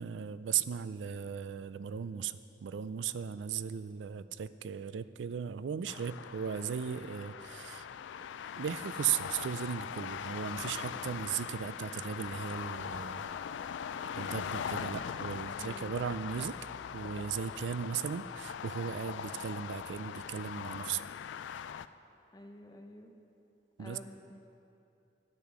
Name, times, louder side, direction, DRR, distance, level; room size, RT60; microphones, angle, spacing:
voice 1, 0.0-7.9 8.5-13.3 14.1-16.6 16.9-21.0 23.8-24.0, right 8 dB, 80° right, 14 dB, 0.4 m, -37 dB
sound 1, 5.9-21.9, left 7 dB, 80° left, 0.3 m, -41 dB
sound 2, 9.9-15.4, equal, 5° left, 2.4 m, -56 dB
voice 2, 15.6-16.2 22.3-23.1 23.8-24.4, left 1 dB, 20° left, 4 dB, 0.8 m, -50 dB
10.5 x 9.2 x 6.1 m, 2.7 s
head